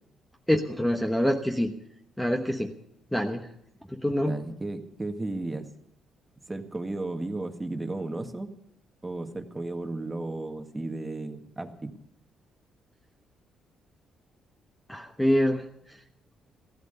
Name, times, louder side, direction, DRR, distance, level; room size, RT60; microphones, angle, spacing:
voice 1, 0.5-1.7 2.2-2.8 3.1-3.5 3.9-4.4 14.9-15.7, equal, 5° left, 4 dB, 1.1 m, -25 dB
voice 2, 4.2-5.7 6.5-8.5 9.0-12.0, right 2 dB, 15° right, 6 dB, 1.7 m, -34 dB
15.5 x 13.0 x 6.8 m, 0.74 s
cardioid pair, 90°, 0 cm